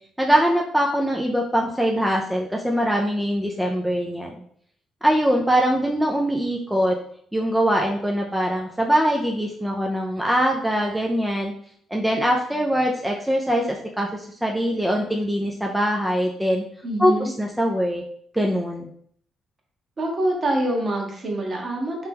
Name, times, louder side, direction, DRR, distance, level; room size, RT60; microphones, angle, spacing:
voice 1, 0.2-4.3 5.0-7.0 7.3-11.5 11.9-16.6 17.0-17.1 17.4-18.0 18.3-18.9, equal, 5° right, 0 dB, 0.4 m, -22 dB
voice 2, 16.8-17.3 20.0-22.1, right 1 dB, 40° right, 0 dB, 1.0 m, -25 dB
3.2 x 2.9 x 3.4 m, 0.64 s
cardioid pair, 90°, 0 cm